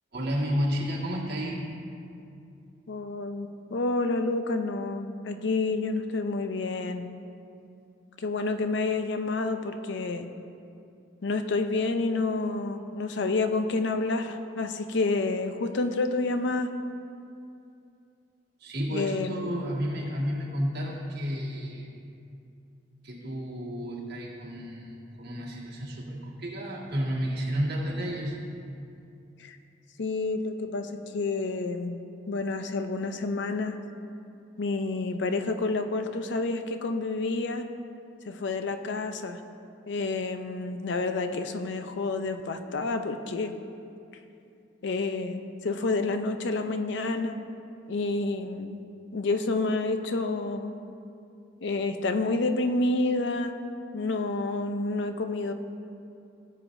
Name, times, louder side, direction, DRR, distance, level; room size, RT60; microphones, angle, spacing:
voice 1, 0.1-1.6 18.6-21.9 23.0-28.5, equal, 60° right, -4 dB, 1.8 m, -31 dB
voice 2, 2.9-7.1 8.2-10.3 11.2-16.7 18.9-19.6 29.4-29.6 30.0-32.0 32.3-33.8 34.6-37.6 38.2-39.4 39.9-43.5 44.8-47.4 47.9-48.8 49.1-50.7 51.6-53.5 53.9-55.5, left 3 dB, 65° left, 8 dB, 0.5 m, -29 dB
16.5 x 7.7 x 2.6 m, 2.6 s
head